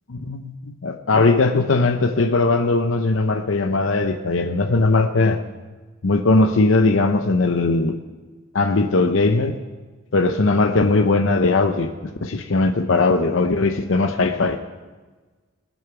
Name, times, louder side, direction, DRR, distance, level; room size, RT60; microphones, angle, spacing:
voice 1, 0.1-5.4 6.0-8.0 8.5-9.6 10.1-14.6, left 3 dB, 70° left, 5 dB, 0.7 m, -19 dB
19.5 x 7.1 x 6.0 m, 1.3 s
head